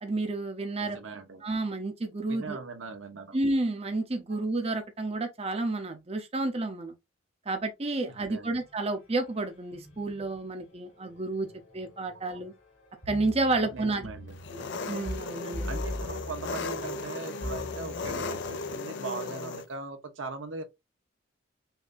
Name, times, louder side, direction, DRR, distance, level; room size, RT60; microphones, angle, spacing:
voice 1, 0.0-1.0 1.4-2.6 3.3-6.9 7.5-11.5 11.7-12.5 13.1-14.1 14.5-15.7, right 2 dB, 30° right, 0.7 m, -30 dB
voice 2, 0.8-1.4 2.3-3.4 4.3-4.4 8.2-8.6 13.6-14.4 15.6-20.6, right 4 dB, 80° right, 1.0 m, -40 dB
sound 1, 8.6-18.8, left 1 dB, 80° left, 2.8 m, -43 dB
Engine, 14.4-19.6, left 3 dB, 60° left, 0.6 m, -36 dB
5.8 x 2.7 x 2.5 m
head